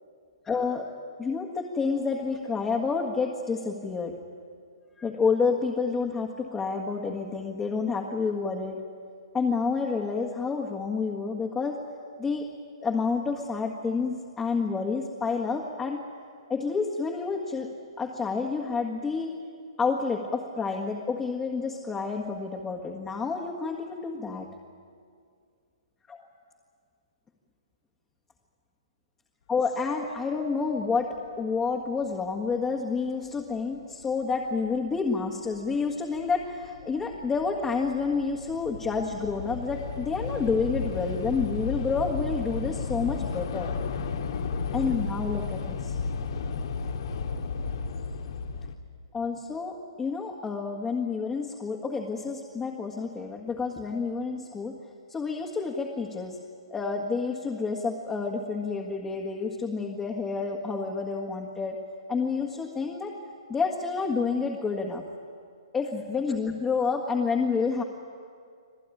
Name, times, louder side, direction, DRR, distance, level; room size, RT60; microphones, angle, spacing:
voice 1, 0.4-0.9 1.2-4.2 5.0-8.8 9.3-11.8 12.2-12.5 12.8-16.0 16.5-17.7 18.0-19.3 19.8-24.5 26.1-26.3 29.5-43.7 44.7-45.9 49.1-54.8 55.1-56.4 56.7-61.8 62.1-63.2 63.5-65.0 65.7-67.8, left 4 dB, 10° left, 0 dB, 1.8 m, -29 dB
Train / Subway metro underground, 34.8-34.9 35.7-35.9 36.2-48.7, left 5 dB, 60° left, 1.9 m, -33 dB
26.0 x 16.5 x 9.9 m, 2.2 s
hypercardioid pair, 150°, 3 cm